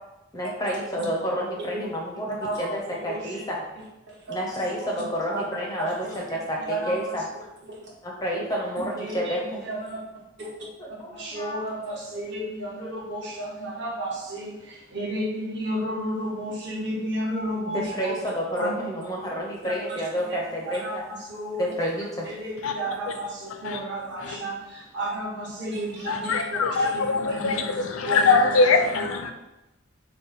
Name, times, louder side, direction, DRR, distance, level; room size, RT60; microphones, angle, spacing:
voice 1, 0.3-3.6 4.3-7.2 8.0-9.6 10.8-11.6 11.9-12.0 17.7-21.0 21.6-22.3, equal, 20° left, 0.4 m, -30 dB
voice 2, 2.4-3.5 4.1-4.3 5.3-5.4 5.8-6.1 6.7-7.2 7.7-7.9 8.3-8.4 8.9-10.0 10.4-10.5 11.1-18.1 18.6-18.7 19.6-20.4 20.6-21.7 22.2-28.6, right 1 dB, 55° right, 1.0 m, -33 dB
voice 3, 26.1-29.3, left 4 dB, 80° left, 0.4 m, -22 dB
3.9 x 2.1 x 3.9 m
head